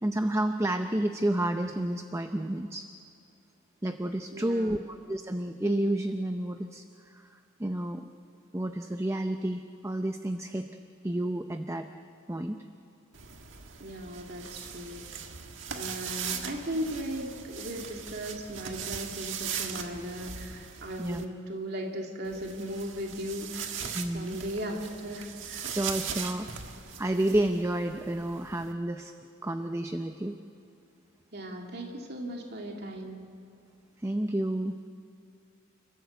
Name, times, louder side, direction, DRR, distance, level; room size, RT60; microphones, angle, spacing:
voice 1, 0.0-2.9 3.8-8.1 8.5-10.7 11.0-11.9 12.3-12.7 21.0-21.2 23.9-24.4 25.8-26.5 27.0-29.1 29.4-30.4 34.0-34.9, right 1 dB, 15° right, 7 dB, 0.6 m, -30 dB
voice 2, 4.3-4.8 13.8-15.3 15.7-23.8 24.1-25.8 31.3-33.2, equal, 55° right, 1 dB, 2.4 m, -37 dB
sound 1, 13.1-21.2 22.2-28.7, right 7 dB, 70° right, 1.7 m, -40 dB
29.0 x 15.0 x 8.1 m, 2.7 s
head